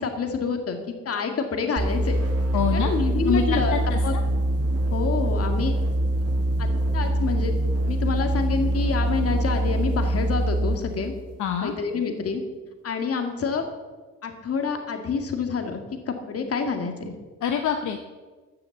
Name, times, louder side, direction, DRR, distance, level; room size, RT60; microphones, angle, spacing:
voice 1, 0.0-2.2 2.7-4.2 4.9-5.7 6.6-6.7 6.9-7.6 7.9-11.1 11.6-12.4 12.8-13.7 14.2-15.8 16.1-17.1, left 5 dB, 50° left, 5 dB, 2.0 m, -27 dB
sound 1, 1.8-10.9, right 1 dB, 50° right, 2.8 m, -24 dB
voice 2, 2.5-2.9 3.2-4.0 11.4-11.7 17.4-18.1, left 7 dB, 75° left, 5 dB, 0.9 m, -25 dB
14.0 x 7.0 x 7.1 m, 1.4 s
cardioid pair, 90°, 30 cm